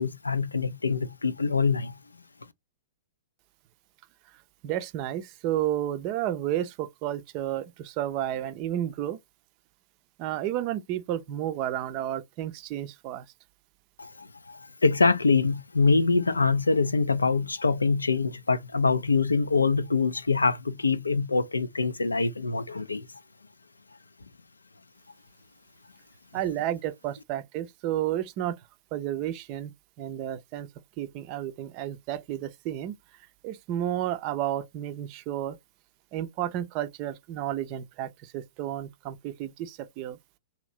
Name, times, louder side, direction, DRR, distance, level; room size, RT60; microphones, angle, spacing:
voice 1, 0.0-2.0 14.0-23.1, left 4 dB, 85° left, 0.4 m, -24 dB
voice 2, 4.6-9.2 10.2-13.2 26.3-28.5 28.9-29.7 30.0-30.7 31.0-33.0 33.4-35.6 36.1-38.1 38.3-40.2, right 12 dB, 40° right, 0.5 m, -31 dB
2.8 x 2.6 x 3.0 m
figure-of-eight pair, 110°, 0 cm